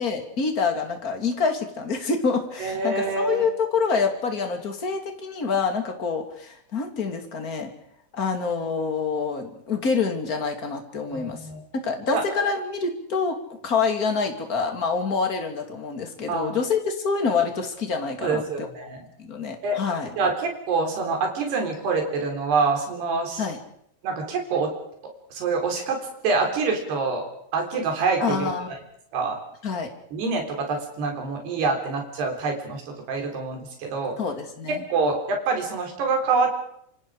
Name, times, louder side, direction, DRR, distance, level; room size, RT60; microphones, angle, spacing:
voice 1, 0.0-7.7 8.1-11.4 11.7-13.4 13.6-18.7 19.2-20.1 23.4-23.6 28.2-28.7 29.6-29.9 34.2-34.8, left 5 dB, 25° left, 4 dB, 2.7 m, -26 dB
voice 2, 2.6-3.5 11.1-11.6 12.1-12.2 16.3-16.6 18.2-19.1 19.6-19.8 20.2-23.4 24.0-24.7 25.3-27.2 27.5-28.5 29.1-29.4 30.1-34.2 34.9-36.6, right 4 dB, 80° right, 3 dB, 5.9 m, -26 dB
26.5 x 26.5 x 5.0 m, 0.71 s
omnidirectional pair, 4.7 m